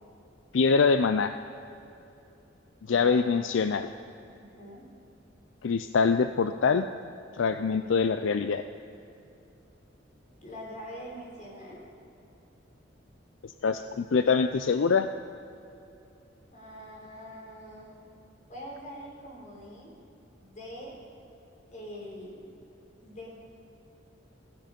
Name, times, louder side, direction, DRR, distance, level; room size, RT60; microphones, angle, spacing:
voice 1, 0.5-1.4 2.9-3.9 5.6-6.9 7.4-8.6 13.4-15.1, left 5 dB, 75° left, 10 dB, 0.4 m, -24 dB
voice 2, 2.9-3.5 4.3-4.8 7.7-7.9 10.4-11.8 16.5-18.0 18.5-19.9 20.4-21.0 21.7-22.5 23.0-23.3, equal, 40° left, -2 dB, 4.3 m, -44 dB
16.0 x 15.5 x 5.2 m, 2.9 s
head